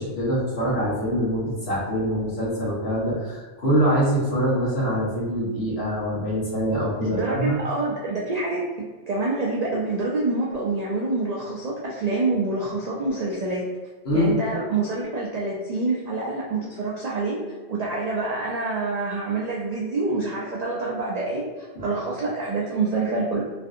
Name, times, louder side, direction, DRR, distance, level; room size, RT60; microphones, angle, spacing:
voice 1, 0.0-7.6 14.0-14.4 21.7-21.8, equal, 60° left, -7 dB, 1.4 m, -24 dB
voice 2, 7.0-8.7 9.1-13.6 14.1-17.4 17.7-23.4, right 3 dB, 60° right, -4 dB, 0.4 m, -26 dB
3.2 x 2.6 x 2.5 m, 1.3 s
omnidirectional pair, 1.2 m